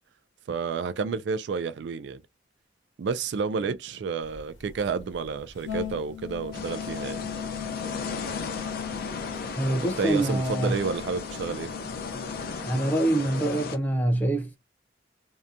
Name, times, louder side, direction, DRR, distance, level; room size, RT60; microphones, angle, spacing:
voice 1, 0.5-2.2 3.0-7.3 9.8-11.7, right 5 dB, 70° right, 0.3 m, -30 dB
sound 1, 4.2-12.6, left 8 dB, 90° left, 1.0 m, -38 dB
sound 2, 6.5-13.8, left 4 dB, 55° left, 0.5 m, -36 dB
voice 2, 9.6-10.8 12.6-14.6, right 1 dB, 10° left, 0.6 m, -25 dB
2.7 x 2.2 x 2.4 m
head